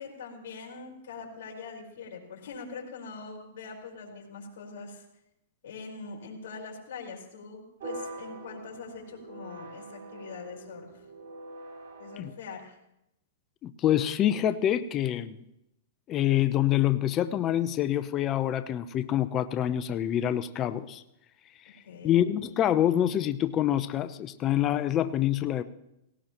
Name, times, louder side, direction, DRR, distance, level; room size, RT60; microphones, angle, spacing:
voice 1, 0.0-5.0 5.6-11.1 12.0-12.8 21.8-22.2, left 4 dB, 70° left, -1 dB, 4.4 m, -43 dB
sound 1, 7.8-12.2, right 2 dB, 70° right, 5.6 m, -43 dB
voice 2, 13.6-15.4 16.1-21.0 22.0-25.6, left 11 dB, 30° left, 11 dB, 0.6 m, -26 dB
18.0 x 17.5 x 3.0 m, 0.84 s
hypercardioid pair, 135°, 0 cm